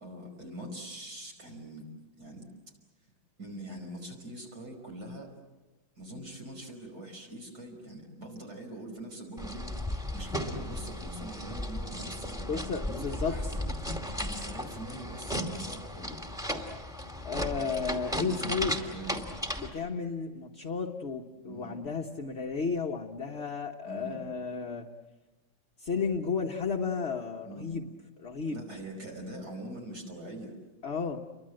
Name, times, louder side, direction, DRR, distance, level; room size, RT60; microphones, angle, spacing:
voice 1, 0.0-1.9 2.2-2.4 3.4-5.3 6.0-16.2 18.2-19.3 21.4-21.8 23.8-24.3 27.5-27.7 28.5-30.5, right 1 dB, 55° right, 2 dB, 5.8 m, -43 dB
sound 1, 9.4-19.7, left 1 dB, ahead, 2.4 m, -35 dB
voice 2, 12.5-13.6 17.2-18.8 19.6-24.9 25.8-27.9 28.2-28.7 30.8-31.2, left 5 dB, 40° left, 1 dB, 1.3 m, -33 dB
30.0 x 23.5 x 7.8 m, 1.1 s
omnidirectional pair, 2.1 m